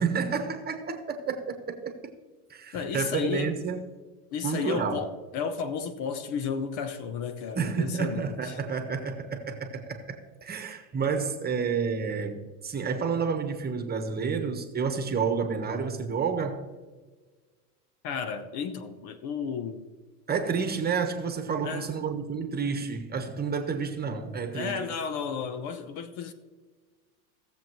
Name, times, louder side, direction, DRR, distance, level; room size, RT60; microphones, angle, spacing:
voice 1, 0.0-2.1 2.5-3.8 4.4-5.0 7.6-16.7 20.3-24.9, right 5 dB, 20° right, 1.2 m, -30 dB
voice 2, 2.7-3.6 4.3-8.6 18.0-19.9 21.6-21.9 24.5-26.3, left 6 dB, 50° left, 1.1 m, -33 dB
17.5 x 7.3 x 3.1 m
supercardioid pair, 110°, 47 cm